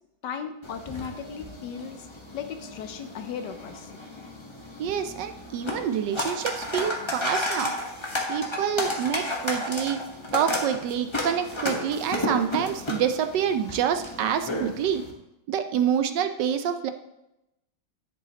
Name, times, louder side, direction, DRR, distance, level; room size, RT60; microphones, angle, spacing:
voice 1, 0.2-2.1 2.3-3.9, left 7 dB, 70° left, 8 dB, 1.3 m, -36 dB
sound 1, 0.6-15.1, left 1 dB, 20° left, 1.0 m, -33 dB
voice 2, 4.8-7.7 8.3-10.0 10.3-15.0 15.5-16.9, right 8 dB, 75° right, 8 dB, 1.2 m, -27 dB
10.5 x 8.0 x 2.9 m, 0.89 s
omnidirectional pair, 2.0 m